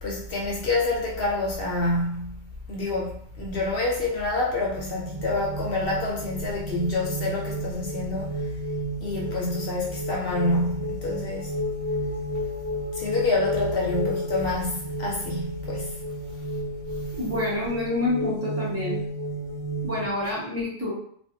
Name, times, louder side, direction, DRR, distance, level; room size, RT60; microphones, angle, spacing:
voice 1, 0.0-8.5 9.0-11.5 12.9-16.0, left 2 dB, 65° left, 0.6 m, -27 dB
sound 1, 4.7-20.1, equal, 45° right, 0.6 m, -32 dB
voice 2, 17.1-19.0 19.8-20.9, left 2 dB, 15° right, 0.9 m, -28 dB
2.6 x 2.2 x 2.6 m
omnidirectional pair, 1.3 m